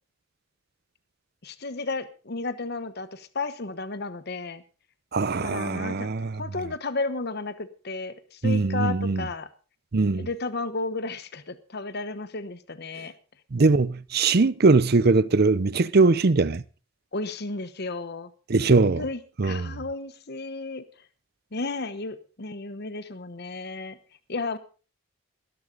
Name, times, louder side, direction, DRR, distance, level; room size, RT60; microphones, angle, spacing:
voice 1, 1.4-4.6 5.4-9.5 10.1-13.1 17.1-18.3 19.0-20.9 21.5-24.0 24.3-24.6, left 3 dB, 50° left, 1.0 m, -33 dB
voice 2, 5.1-6.4 8.4-9.2 9.9-10.3 13.5-16.6 18.5-19.0 19.4-19.7, right 3 dB, 45° right, 0.6 m, -21 dB
19.5 x 11.5 x 3.9 m
head